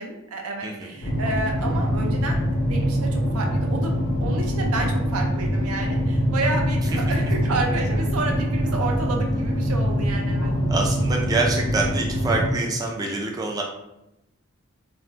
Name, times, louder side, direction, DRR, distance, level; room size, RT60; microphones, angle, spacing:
voice 1, 0.0-2.4 2.6-10.5, right 3 dB, 90° right, 2 dB, 0.6 m, -30 dB
sound 1, 1.0-12.5, equal, 80° left, 0.8 m, -24 dB
voice 2, 10.7-13.6, right 3 dB, 15° right, 0 dB, 0.3 m, -26 dB
2.5 x 2.1 x 3.4 m, 0.88 s
head